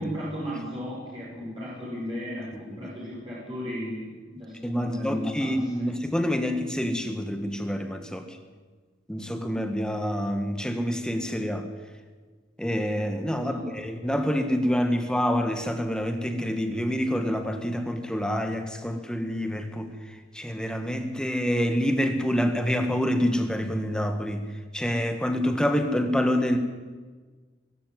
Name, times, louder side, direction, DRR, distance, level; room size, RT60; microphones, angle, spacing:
voice 1, 0.0-5.6 6.0-6.1 13.4-13.8, equal, 30° right, -7 dB, 6.6 m, -35 dB
voice 2, 4.6-8.4 9.1-11.7 12.6-19.9 20.3-24.4 24.7-26.6, equal, 5° left, 6 dB, 1.7 m, -27 dB
24.0 x 12.5 x 9.6 m, 1.4 s
head